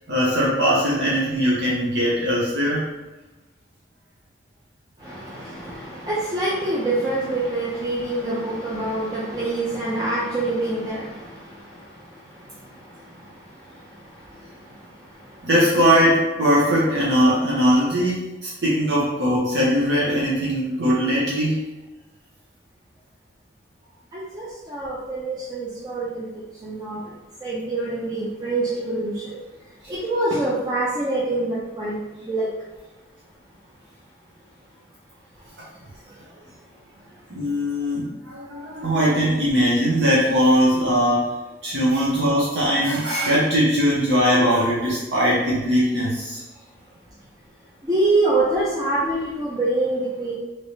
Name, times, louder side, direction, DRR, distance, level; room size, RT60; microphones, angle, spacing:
voice 1, 0.1-2.9 15.4-21.6 37.3-41.3 41.6-46.4, equal, 75° right, -7 dB, 0.8 m, -20 dB
voice 2, 5.0-15.5 24.1-27.1 27.4-32.5 35.4-37.3 38.7-38.9 47.1-47.4 47.8-50.3, right 2 dB, 20° right, -8 dB, 0.5 m, -27 dB
3.1 x 3.1 x 2.7 m, 1.1 s
head